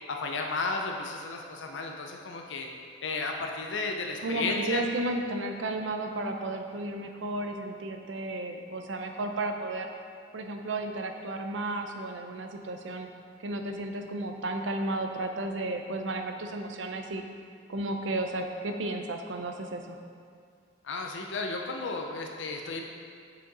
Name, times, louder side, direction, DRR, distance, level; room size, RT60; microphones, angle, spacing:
voice 1, 0.1-2.7 3.0-4.8 20.8-22.8, left 3 dB, 70° left, 2 dB, 0.5 m, -33 dB
voice 2, 4.2-9.9 10.3-13.1 13.4-17.2 17.7-20.0, right 2 dB, 70° right, 5 dB, 0.6 m, -33 dB
7.5 x 4.9 x 3.9 m, 2.3 s
head